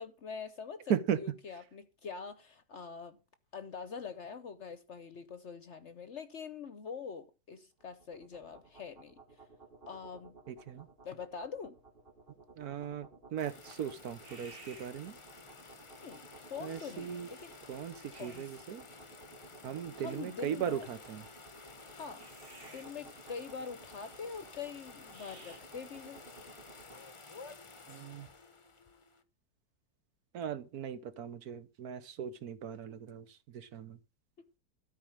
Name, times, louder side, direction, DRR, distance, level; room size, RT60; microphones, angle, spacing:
voice 1, 0.0-3.2 3.5-9.5 9.9-10.4 11.0-11.8 16.0-16.2 16.5-17.5 18.2-18.5 20.0-20.9 21.9-22.3 22.6-26.2 34.4-34.5, left 6 dB, 55° left, 0.9 m, -44 dB
sound 1, 7.8-27.0, right 3 dB, 35° right, 1.9 m, -56 dB
voice 2, 10.5-10.9 12.6-15.2 16.6-17.3 17.7-18.9 19.6-21.2 27.9-28.3 30.3-34.0, right 8 dB, 65° right, 1.3 m, -38 dB
sound 2, 13.4-29.2, left 3 dB, 25° left, 0.7 m, -53 dB
13.0 x 4.7 x 8.7 m
omnidirectional pair, 1.8 m